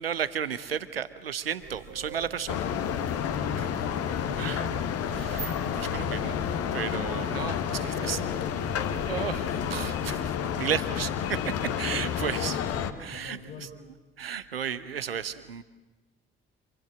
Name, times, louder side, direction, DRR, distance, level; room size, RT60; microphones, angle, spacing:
voice 1, 0.0-2.7 4.4-4.7 5.1-8.2 9.0-12.6 13.0-13.7 14.2-15.6, right 8 dB, 85° right, 15 dB, 0.8 m, -34 dB
sound 1, 1.6-9.9, right 5 dB, 55° right, 2.7 m, -45 dB
sound 2, 2.5-12.9, left 8 dB, 55° left, 1.6 m, -30 dB
voice 2, 3.5-4.8 7.8-9.1 12.0-13.7, left 5 dB, 70° left, 1 dB, 4.8 m, -44 dB
27.0 x 23.5 x 7.6 m, 1.2 s
figure-of-eight pair, 45°, 29 cm